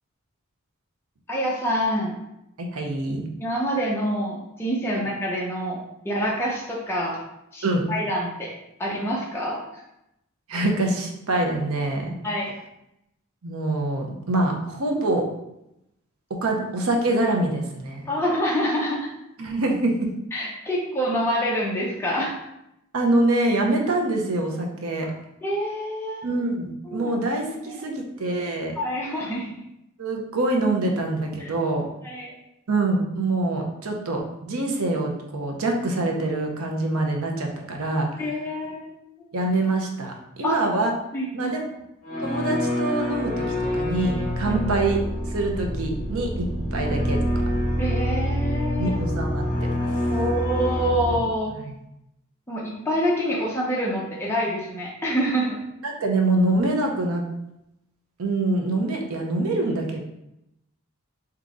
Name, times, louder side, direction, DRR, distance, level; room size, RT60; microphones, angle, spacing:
voice 1, 1.3-2.2 3.4-7.2 7.5-8.5 8.8-9.6 12.2-12.5 18.1-19.1 20.3-22.3 25.4-26.2 26.9-27.2 27.5-27.9 28.8-29.5 31.4-31.5 32.0-32.4 38.2-39.0 40.4-40.6 41.1-41.5 44.5-44.6 47.8-49.0 50.1-51.5 52.5-55.6, equal, 10° left, -4 dB, 0.6 m, -26 dB
voice 2, 2.6-3.3 4.9-5.0 7.6-7.8 10.5-12.2 13.4-15.3 16.4-18.1 19.4-20.1 22.9-25.1 26.2-28.8 30.0-31.9 32.7-38.1 39.3-40.9 41.3-41.6 42.2-43.4 43.7-45.0 45.3-47.2 48.8-49.8 51.5-51.7 55.8-57.2 58.2-60.0, right 2 dB, 85° right, 1 dB, 0.7 m, -25 dB
sound 1, 42.0-51.2, equal, 35° left, 1.3 m, -26 dB
3.6 x 2.9 x 3.7 m, 0.85 s
head